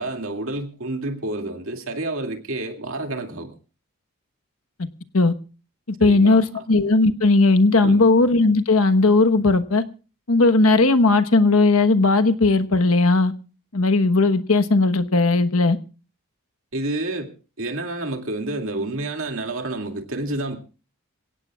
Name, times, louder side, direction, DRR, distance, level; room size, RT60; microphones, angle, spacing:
voice 1, 0.0-3.5 6.0-6.6 7.8-8.1 16.7-20.6, right 2 dB, 70° right, 2.4 m, -29 dB
voice 2, 6.0-9.8 10.3-13.3 13.7-15.8, left 3 dB, 80° left, 1.2 m, -17 dB
26.5 x 16.5 x 2.4 m
head